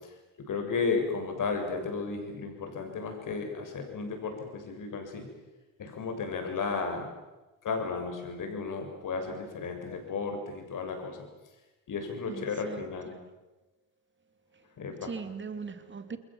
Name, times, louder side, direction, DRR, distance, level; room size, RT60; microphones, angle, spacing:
voice 1, 0.5-5.3 5.8-7.1 7.6-11.3 11.9-13.1 14.8-15.1, left 4 dB, 55° left, 4 dB, 7.2 m, -34 dB
voice 2, 12.3-12.9 15.0-16.2, right 5 dB, 30° right, 9 dB, 2.8 m, -39 dB
28.5 x 21.5 x 7.6 m, 1.1 s
cardioid pair, 90°, 39 cm